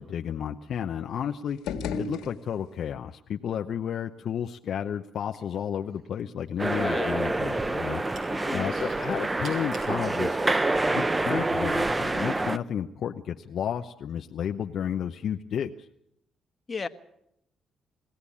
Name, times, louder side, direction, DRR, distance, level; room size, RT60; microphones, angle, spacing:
voice 1, 0.0-1.6 2.0-8.0 8.5-10.4 10.9-15.7, left 9 dB, 65° left, 4 dB, 0.8 m, -32 dB
sound 1, 1.5-2.9, left 5 dB, 85° left, 1.8 m, -35 dB
sound 2, 5.1-6.2 6.5-7.5 7.9-8.3 8.7-9.9 10.6-10.7, right 3 dB, 60° right, 7.3 m, -47 dB
sound 3, 6.6-12.6, right 2 dB, 20° right, 0.8 m, -27 dB
voice 2, 6.8-7.2 8.3-8.8 16.7-16.9, left 5 dB, 30° left, 7 dB, 1.4 m, -34 dB
21.5 x 16.5 x 8.5 m, 0.78 s
cardioid pair, 90°, 0 cm